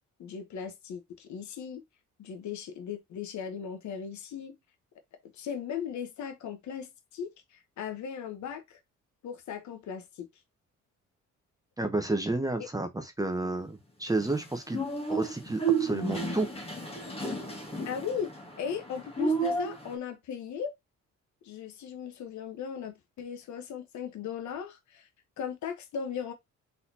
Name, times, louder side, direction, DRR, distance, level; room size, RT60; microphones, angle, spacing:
voice 1, 0.2-1.8 2.2-4.6 5.3-8.8 9.2-10.3 17.8-20.7 21.4-25.1 25.4-26.3, left 7 dB, 70° left, 1.1 m, -37 dB
voice 2, 11.8-14.8 15.1-16.5, right 2 dB, 10° right, 0.8 m, -31 dB
sound 1, 14.2-19.9, right 3 dB, 20° left, 1.5 m, -32 dB
4.1 x 4.0 x 2.8 m
cardioid pair, 90°, 30 cm